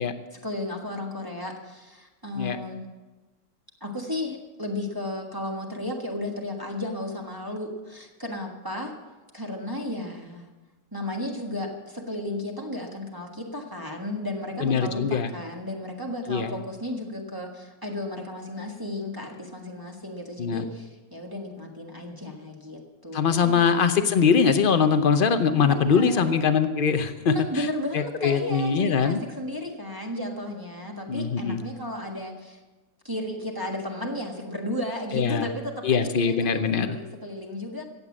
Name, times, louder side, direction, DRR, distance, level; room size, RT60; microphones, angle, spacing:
voice 1, 0.3-2.9 3.8-8.9 9.3-10.5 10.9-23.6 25.6-26.3 27.3-32.6 33.0-37.8, left 1 dB, 15° right, 0 dB, 1.4 m, -33 dB
voice 2, 14.6-15.3 16.3-16.5 20.4-20.6 23.1-27.7 27.9-29.2 31.1-31.6 35.1-35.5 35.8-37.0, left 6 dB, 60° left, 10 dB, 0.5 m, -22 dB
15.0 x 8.7 x 7.3 m, 1.2 s
omnidirectional pair, 1.9 m